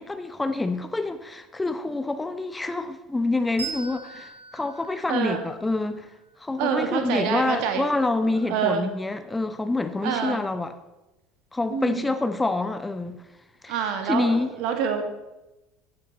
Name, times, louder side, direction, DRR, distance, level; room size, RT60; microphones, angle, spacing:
voice 1, 0.0-6.1 6.4-10.7 11.5-13.2 13.6-13.8 14.1-14.5, left 2 dB, 10° left, 9 dB, 0.8 m, -27 dB
Bell, 3.6-6.7, right 6 dB, 75° right, 3.7 m, -41 dB
voice 2, 5.1-5.4 6.6-7.9 8.5-8.9 10.0-10.4 11.7-12.1 13.7-15.0, right 7 dB, 55° right, 6 dB, 1.8 m, -26 dB
15.0 x 8.9 x 4.2 m, 1.0 s
figure-of-eight pair, 70°, 0 cm